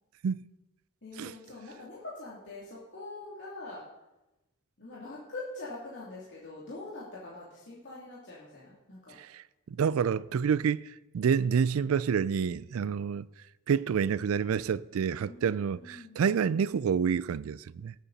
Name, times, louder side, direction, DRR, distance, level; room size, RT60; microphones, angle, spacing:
voice 1, 1.0-3.8 4.8-9.2 12.7-13.0 15.3-16.3, left 2 dB, 55° left, 2.8 m, -44 dB
voice 2, 9.2-13.3 13.7-17.9, right 7 dB, 75° right, 0.4 m, -28 dB
18.0 x 8.4 x 4.1 m
head